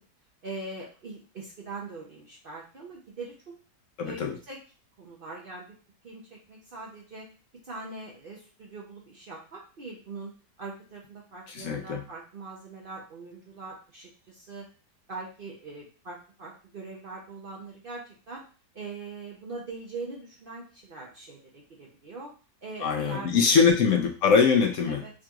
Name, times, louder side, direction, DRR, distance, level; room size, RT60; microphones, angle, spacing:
voice 1, 0.4-3.5 4.0-4.6 5.0-5.8 6.0-7.3 7.6-14.7 15.1-18.4 18.7-22.3 22.6-23.6 24.9-25.1, right 3 dB, 65° right, -2 dB, 0.5 m, -42 dB
voice 2, 4.0-4.3 11.5-12.0 22.8-25.0, left 5 dB, 65° left, 2 dB, 0.8 m, -22 dB
4.6 x 2.9 x 2.3 m, 0.36 s
omnidirectional pair, 1.8 m